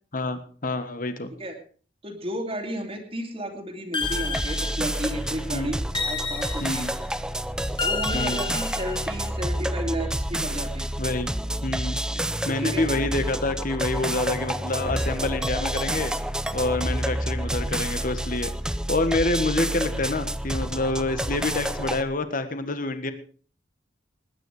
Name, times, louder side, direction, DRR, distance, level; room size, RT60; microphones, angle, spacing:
voice 1, 0.1-1.3 5.5-5.7 6.6-6.9 8.1-8.5 11.0-11.3 11.6-16.1 16.5-18.5 18.9-23.1, left 2 dB, 45° left, 10 dB, 1.5 m, -27 dB
voice 2, 2.0-6.9 7.8-10.9 12.6-12.9, right 1 dB, 30° right, 3 dB, 2.4 m, -33 dB
sound 1, 3.9-5.3 5.9-7.1 7.8-9.3, left 4 dB, 25° left, 1.7 m, -31 dB
sound 2, 4.0-22.0, right 1 dB, 5° right, 0.6 m, -29 dB
20.0 x 9.8 x 4.9 m, 0.42 s
head